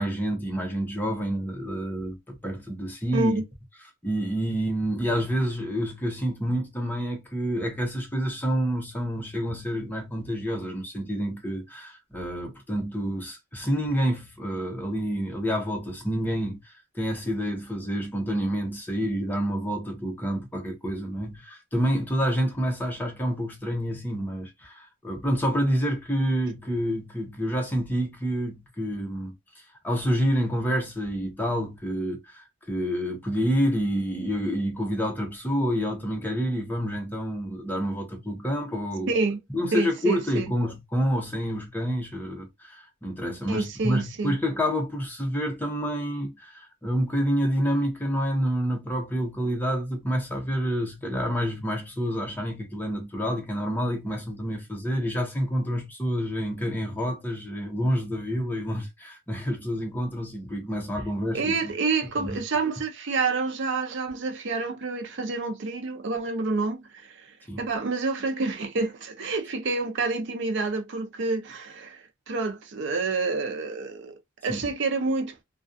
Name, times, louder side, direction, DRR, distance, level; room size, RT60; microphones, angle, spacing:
voice 1, 0.0-3.4 4.0-29.3 29.8-39.1 39.5-61.7 62.0-62.4 67.5-67.7 74.5-74.6, equal, 10° left, 0.7 m, -28 dB
voice 2, 3.1-3.4 39.1-39.4 39.7-40.5 43.5-44.4 61.3-67.3 67.6-74.1 74.4-75.3, right 3 dB, 60° right, 0.6 m, -28 dB
2.4 x 2.3 x 2.5 m
head